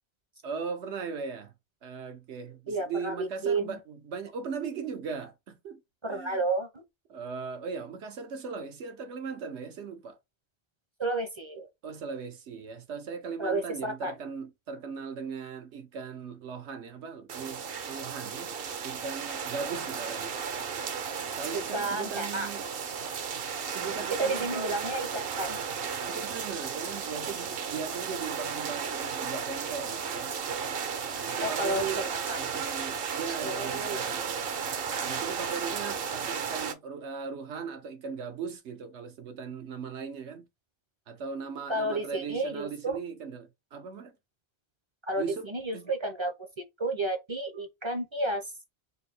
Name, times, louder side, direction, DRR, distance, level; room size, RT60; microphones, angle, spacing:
voice 1, 0.4-1.5 1.8-5.8 6.1-6.4 7.1-10.2 11.8-18.5 18.8-20.3 21.4-22.6 23.7-24.8 26.1-30.4 31.1-32.0 32.4-34.4 34.9-40.5 41.1-44.1 45.2-45.5 45.7-45.9, right 5 dB, 85° right, 1.2 m, -38 dB
voice 2, 2.7-3.8 6.0-6.8 11.0-11.7 13.4-14.2 21.7-22.5 24.1-25.6 31.4-32.4 33.4-34.5 41.7-43.0 45.0-46.5 46.8-48.5, right 2 dB, 35° right, 0.5 m, -32 dB
sound 1, 17.3-36.7, right 6 dB, 60° right, 0.8 m, -34 dB
3.9 x 2.6 x 4.2 m
omnidirectional pair, 1.1 m